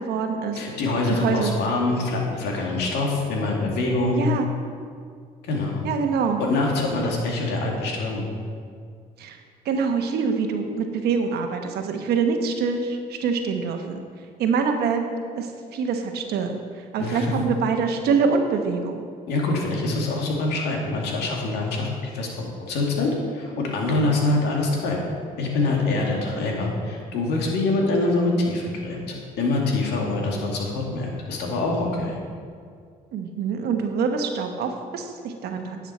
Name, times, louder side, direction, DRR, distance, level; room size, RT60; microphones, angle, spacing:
voice 1, 0.0-0.6 1.1-1.6 4.2-4.5 5.8-6.4 9.2-9.4 9.6-14.0 14.4-15.0 15.3-16.6 16.9-19.1 33.1-35.8, right 5 dB, 70° right, 5 dB, 1.1 m, -25 dB
voice 2, 0.5-4.3 5.4-5.9 6.4-8.3 17.0-17.4 19.3-21.9 22.1-25.1 25.4-32.2, left 2 dB, 75° left, -1 dB, 2.1 m, -25 dB
10.5 x 7.3 x 4.3 m, 2.1 s
supercardioid pair, 70°, 17 cm